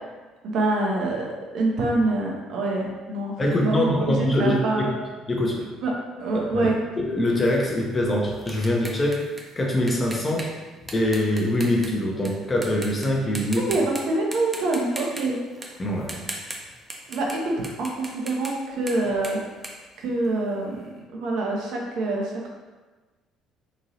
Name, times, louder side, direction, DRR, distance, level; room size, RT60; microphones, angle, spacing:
voice 1, 0.4-4.9 5.8-5.9 6.2-6.8 13.6-15.4 17.1-19.4 20.0-22.5, right 2 dB, 60° right, -1 dB, 0.6 m, -26 dB
voice 2, 3.4-4.6 5.3-5.6 6.3-6.7 7.0-9.2 9.6-10.5 10.9-13.6 15.8-16.2, left 1 dB, 30° left, -1 dB, 0.7 m, -23 dB
sound 1, 7.4-12.3 12.6-13.1 13.3-14.0 14.3-17.4 17.6-20.6, right 2 dB, 20° right, 0.6 m, -38 dB
3.0 x 2.7 x 2.7 m, 1.3 s
figure-of-eight pair, 50°, 0 cm